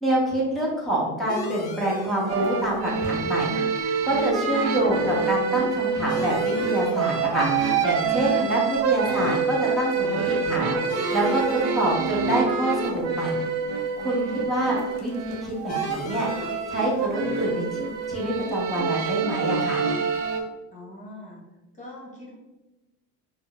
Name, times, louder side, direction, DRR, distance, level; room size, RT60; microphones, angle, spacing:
voice 1, 0.0-3.5 4.0-10.8 11.1-13.4 14.0-16.3 16.7-19.8, right 1 dB, ahead, -6 dB, 0.8 m, -26 dB
sound 1, 1.3-20.4, left 3 dB, 80° left, 0.7 m, -43 dB
sound 2, 2.3-20.4, right 5 dB, 50° right, 0.5 m, -26 dB
voice 2, 14.1-14.5 20.7-21.4 21.7-22.4, left 1 dB, 25° left, -3 dB, 1.1 m, -42 dB
4.4 x 2.1 x 2.3 m, 1.1 s
supercardioid pair, 125°, 32 cm